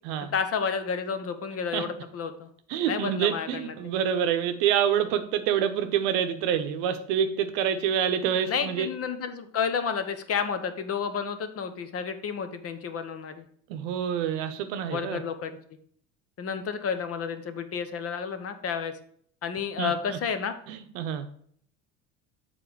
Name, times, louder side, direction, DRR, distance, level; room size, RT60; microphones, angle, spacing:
voice 1, 0.3-2.5 2.9-3.7 8.5-13.4 14.9-15.6 16.4-18.9 19.4-20.5, left 6 dB, 40° left, 9 dB, 0.8 m, -31 dB
voice 2, 2.7-8.9 13.7-15.2 19.8-20.2 20.7-21.3, right 8 dB, 70° right, 8 dB, 0.8 m, -27 dB
6.7 x 3.9 x 4.6 m, 0.62 s
hypercardioid pair, 80°, 38 cm